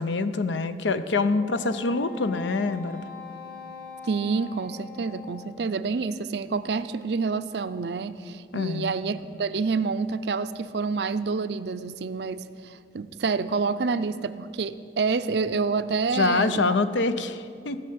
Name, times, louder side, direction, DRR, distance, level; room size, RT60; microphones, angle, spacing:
voice 1, 0.0-3.0 8.5-8.9 16.1-17.8, left 3 dB, 85° left, 12 dB, 0.7 m, -25 dB
Wind instrument woodwind instrument, 1.3-5.9, left 5 dB, 50° left, 1.4 m, -43 dB
voice 2, 4.0-16.8, right 4 dB, 65° right, 13 dB, 0.5 m, -28 dB
14.0 x 6.6 x 9.5 m, 2.4 s
head